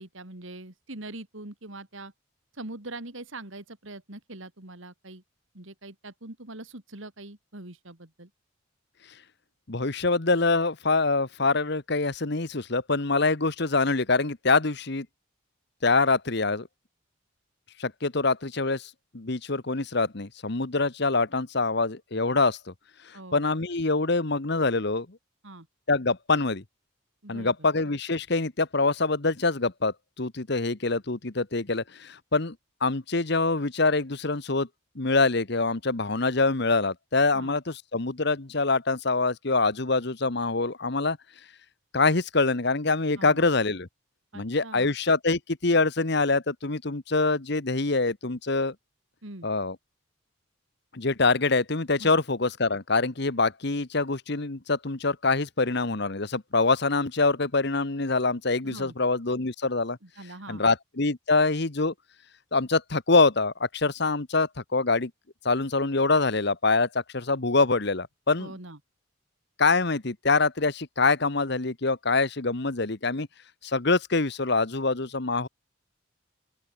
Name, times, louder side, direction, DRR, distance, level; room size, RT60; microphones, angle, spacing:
voice 1, 0.0-2.1 2.5-5.2 5.5-8.3 23.1-23.4 25.4-25.7 27.2-27.5 37.3-37.5 43.2-43.4 44.3-44.9 49.2-49.5 52.0-52.1 58.6-58.9 60.0-60.6 68.4-68.8, right 2 dB, 70° right, 2.9 m, -42 dB
voice 2, 9.7-15.1 15.8-16.7 17.8-22.7 23.1-25.2 25.9-26.6 27.3-32.5 32.8-34.7 34.9-41.2 41.9-43.9 44.3-48.7 49.4-49.8 50.9-60.0 60.5-61.9 62.5-65.1 65.4-68.5 69.6-73.3 73.6-75.5, left 3 dB, 55° left, 1.3 m, -25 dB
open air
head